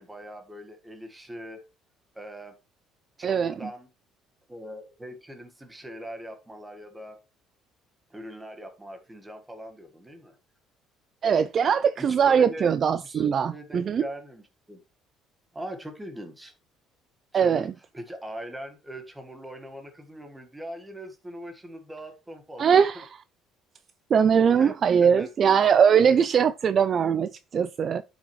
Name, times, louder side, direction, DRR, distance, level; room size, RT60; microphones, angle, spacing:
voice 1, 0.0-1.6 2.1-2.6 3.2-3.9 4.5-7.2 8.1-10.4 12.0-12.7 13.0-14.8 15.5-16.5 17.3-17.7 17.9-23.0 24.6-24.7 25.0-25.5, equal, 10° right, 1.5 m, -41 dB
voice 2, 3.2-3.5 11.2-14.0 17.3-17.7 22.6-23.1 24.1-28.0, right 7 dB, 35° right, 0.3 m, -21 dB
11.0 x 6.2 x 3.1 m
cardioid pair, 150°, 0 cm